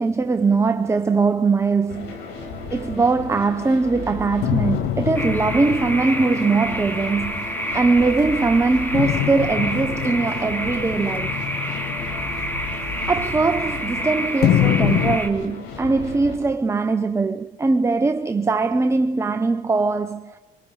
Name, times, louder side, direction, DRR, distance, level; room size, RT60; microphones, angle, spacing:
voice 1, 0.0-2.2 2.7-11.4 13.1-20.4, right 3 dB, 15° right, 0.8 m, -21 dB
sound 1, 1.9-16.4, left 3 dB, 90° left, 6.6 m, -34 dB
sound 2, 4.4-8.1 8.9-13.9 14.4-15.2, left 12 dB, 70° left, 0.7 m, -26 dB
sound 3, 5.1-15.3, equal, 10° left, 3.0 m, -29 dB
27.0 x 25.0 x 4.9 m
cardioid pair, 110°, 17 cm